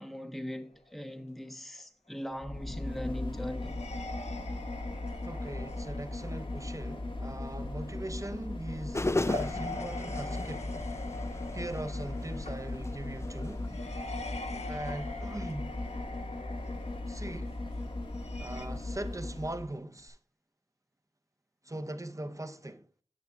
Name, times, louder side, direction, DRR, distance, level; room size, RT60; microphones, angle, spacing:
voice 1, 0.0-3.9, equal, ahead, 0.9 m, -40 dB
sound 1, 0.6-1.0 1.8-1.9 2.2-18.7, left 2 dB, 75° left, 0.9 m, -44 dB
sound 2, 2.4-19.7 20.1-20.2, left 2 dB, 50° left, 1.2 m, -38 dB
voice 2, 5.2-10.7 11.5-13.7 14.5-15.7 17.1-17.5 18.4-20.2 21.6-22.9, right 1 dB, 30° right, 0.9 m, -40 dB
sound 3, 8.9-14.5, left 2 dB, 25° left, 0.5 m, -37 dB
9.7 x 8.0 x 2.3 m
wide cardioid pair, 45°, 11 cm